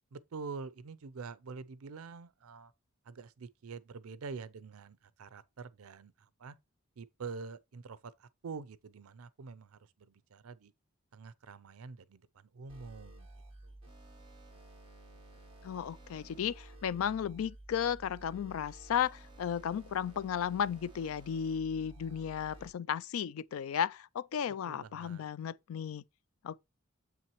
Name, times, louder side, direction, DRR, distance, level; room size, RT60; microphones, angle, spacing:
voice 1, 0.1-2.7 3.1-6.6 7.0-10.7 11.1-13.3 13.6-13.7 24.6-25.2, right 4 dB, 90° right, 0.5 m, -46 dB
sound 1, 12.7-22.7, right 1 dB, 25° right, 2.4 m, -53 dB
voice 2, 15.6-26.0 26.4-26.6, left 8 dB, 75° left, 0.3 m, -34 dB
7.4 x 5.8 x 3.0 m
head